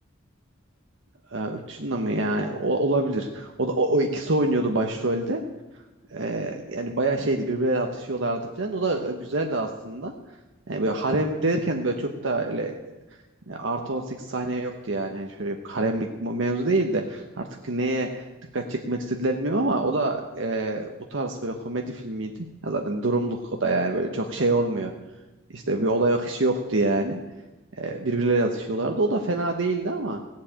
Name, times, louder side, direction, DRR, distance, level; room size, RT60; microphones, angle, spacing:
voice 1, 1.3-5.4 6.1-10.1 10.7-12.7 13.5-18.3 18.5-22.3 22.6-24.9 25.5-27.2 27.8-30.2, right 2 dB, 70° right, 3 dB, 1.0 m, -26 dB
16.5 x 7.5 x 8.7 m, 1.1 s
head